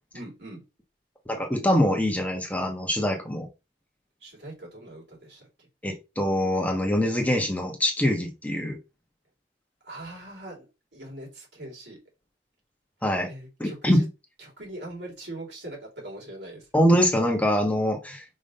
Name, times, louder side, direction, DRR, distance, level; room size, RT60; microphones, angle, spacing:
voice 1, 0.1-0.6 4.2-5.7 9.8-10.7 10.9-12.0 13.3-14.1 14.4-16.6, right 1 dB, 70° right, -1 dB, 3.6 m, -41 dB
voice 2, 1.3-3.5 5.8-8.8 13.0-13.3 13.6-14.0 16.7-18.2, equal, 10° left, 2 dB, 1.2 m, -24 dB
5.1 x 3.7 x 5.4 m, 0.27 s
head